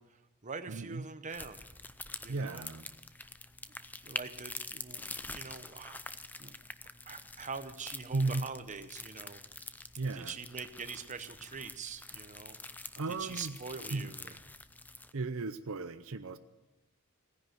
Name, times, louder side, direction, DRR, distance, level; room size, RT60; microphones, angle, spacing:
voice 1, 0.0-1.6 2.2-2.6 4.0-6.5 7.1-9.4 10.1-12.6 13.2-14.4, right 5 dB, 35° right, 10 dB, 0.8 m, -44 dB
voice 2, 0.7-1.0 2.3-2.9 8.1-8.5 10.0-10.4 13.0-13.6 13.9-14.1 15.1-16.4, right 3 dB, 65° right, 11 dB, 0.7 m, -35 dB
sound 1, 1.3-15.1, left 2 dB, 10° left, 0.5 m, -46 dB
17.5 x 10.5 x 7.8 m, 1.1 s
head